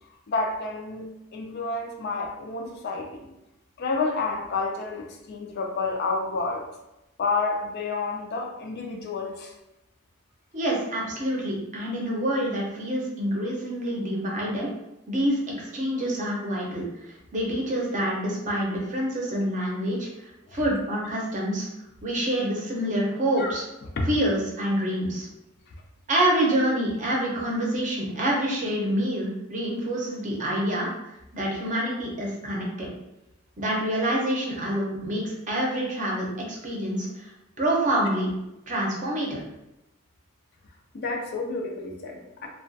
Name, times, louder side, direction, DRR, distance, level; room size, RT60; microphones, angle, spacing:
voice 1, 0.3-3.3 3.8-6.6 7.2-9.5 20.5-20.6 23.4-23.5 24.0-24.1 40.9-42.5, left 3 dB, 50° left, 1 dB, 0.4 m, -29 dB
voice 2, 10.5-14.7 15.1-20.1 20.5-21.7 22.0-23.6 24.0-25.3 26.1-30.9 31.3-32.9 33.6-37.3 37.6-38.3 38.7-39.4, right 1 dB, 40° right, -2 dB, 0.6 m, -27 dB
2.3 x 2.2 x 2.6 m, 0.89 s
head